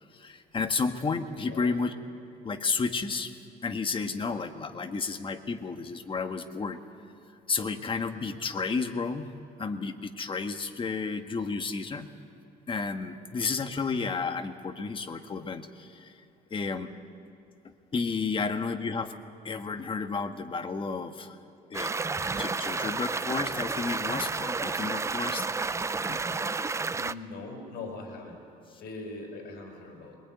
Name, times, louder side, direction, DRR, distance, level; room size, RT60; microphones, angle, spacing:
voice 1, 0.1-1.9 2.4-6.8 7.5-9.3 9.6-12.1 12.7-16.1 16.5-16.9 17.6-19.1 19.4-21.4 21.7-21.9 22.4-25.4 26.1-26.2, left 4 dB, 30° left, 7 dB, 1.5 m, -32 dB
sound 1, 21.7-27.1, right 4 dB, 15° right, 0.5 m, -31 dB
voice 2, 26.9-28.4 28.8-30.2, left 3 dB, 70° left, 2 dB, 6.4 m, -41 dB
23.0 x 20.5 x 9.5 m, 2.5 s
cardioid pair, 110°, 17 cm